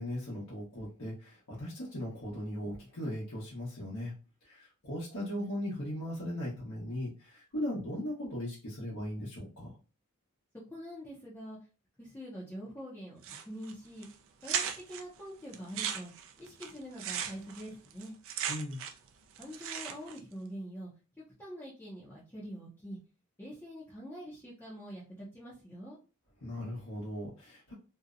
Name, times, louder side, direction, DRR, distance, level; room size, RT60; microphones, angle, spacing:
voice 1, 0.0-4.1 4.4-9.7 18.5-18.8 26.4-27.7, left 1 dB, 80° left, -6 dB, 0.9 m, -38 dB
voice 2, 10.7-11.6 12.0-14.1 14.4-16.1 16.4-18.1 19.4-20.9 21.4-23.0 23.4-26.0, equal, 10° left, -7 dB, 0.5 m, -45 dB
sound 1, 13.2-13.7 14.0-14.1 14.4-15.0 15.5-19.1 19.3-20.2, right 8 dB, 60° right, 0.4 m, -36 dB
2.6 x 2.0 x 2.4 m, 0.34 s
head